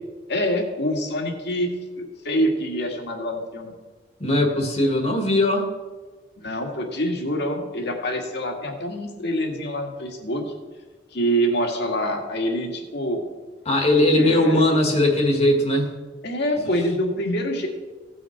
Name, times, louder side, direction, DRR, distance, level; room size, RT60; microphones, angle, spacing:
voice 1, 0.3-3.7 6.4-10.4 11.1-13.2 14.2-14.6 16.2-17.7, equal, 60° left, 3 dB, 1.8 m, -26 dB
voice 2, 4.2-5.7 13.6-15.9, left 1 dB, 35° left, 3 dB, 1.6 m, -19 dB
16.5 x 6.5 x 4.5 m, 1.3 s
head